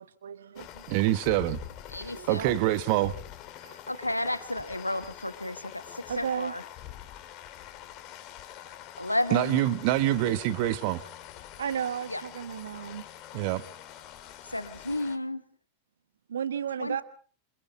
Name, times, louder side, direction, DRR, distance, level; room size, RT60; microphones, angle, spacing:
voice 1, 0.2-0.9 2.1-2.5 3.6-4.3 6.1-6.5 11.6-13.1 16.3-17.0, right 8 dB, 65° right, 1.2 m, -34 dB
sound 1, 0.6-15.2, left 12 dB, 40° left, 2.3 m, -45 dB
voice 2, 0.9-1.6 2.3-3.1 9.3-11.0 13.3-13.6, right 15 dB, 45° right, 1.3 m, -25 dB
voice 3, 1.9-2.4 3.8-6.6 9.0-9.6 12.1-12.2 14.5-15.4 16.8-17.0, left 1 dB, 85° left, 1.3 m, -32 dB
27.5 x 25.0 x 3.9 m
figure-of-eight pair, 90°, 0 cm